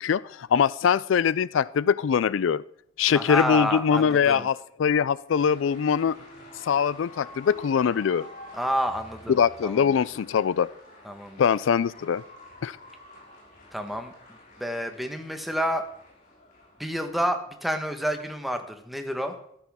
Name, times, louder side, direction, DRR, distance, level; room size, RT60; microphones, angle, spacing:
voice 1, 0.0-2.6 3.0-6.2 6.6-8.3 9.3-10.7 11.4-12.2 12.6-12.8, left 7 dB, 75° left, 19 dB, 0.4 m, -23 dB
voice 2, 3.1-4.5 8.5-9.8 11.0-11.4 13.7-14.1 14.6-15.8 16.8-19.4, equal, ahead, 6 dB, 1.3 m, -29 dB
sound 1, 5.3-17.2, left 1 dB, 45° left, 6.0 m, -48 dB
14.5 x 13.5 x 3.7 m, 0.72 s
head